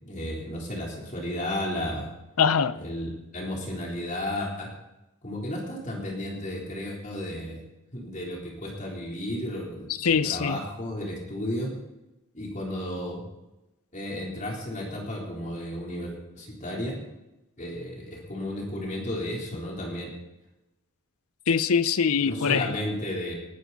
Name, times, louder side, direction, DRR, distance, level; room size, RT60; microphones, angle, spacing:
voice 1, 0.0-2.1 2.8-4.7 5.2-7.6 7.9-11.7 12.3-13.2 13.9-17.0 17.6-20.1 22.2-23.3, left 1 dB, 35° left, -2 dB, 3.7 m, -33 dB
voice 2, 2.4-2.8 9.9-10.6 21.5-22.8, left 6 dB, 80° left, 15 dB, 0.7 m, -23 dB
19.5 x 11.0 x 4.2 m, 0.98 s
head